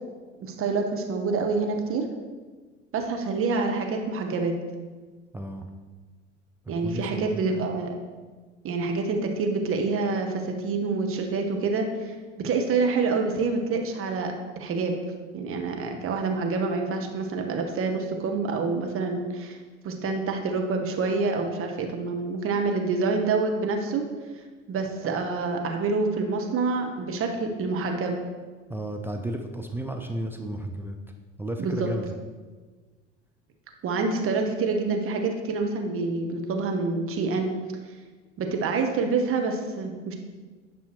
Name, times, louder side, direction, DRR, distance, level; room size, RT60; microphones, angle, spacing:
voice 1, 0.4-2.1 2.9-4.6 6.7-7.9 8.6-15.0 15.3-19.6 19.8-24.0 24.7-28.2 31.6-31.9 33.8-37.6 38.4-40.1, right 4 dB, 35° right, 3 dB, 1.1 m, -27 dB
voice 2, 5.3-5.6 6.8-7.4 28.7-31.0 31.4-32.1, right 1 dB, 5° right, 4 dB, 0.5 m, -33 dB
10.0 x 5.4 x 3.1 m, 1.4 s
figure-of-eight pair, 75°, 38 cm